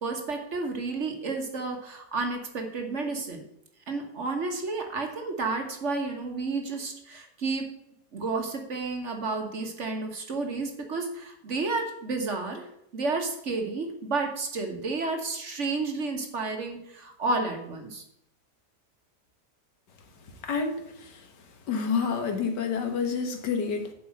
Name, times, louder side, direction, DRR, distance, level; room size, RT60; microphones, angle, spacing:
voice 1, 0.0-3.4 3.9-7.7 8.1-12.7 12.9-18.0, right 3 dB, 45° right, 4 dB, 1.4 m, -31 dB
voice 2, 20.4-21.3 21.7-23.9, left 5 dB, 80° left, 5 dB, 1.9 m, -29 dB
7.6 x 5.3 x 7.5 m, 0.79 s
omnidirectional pair, 1.8 m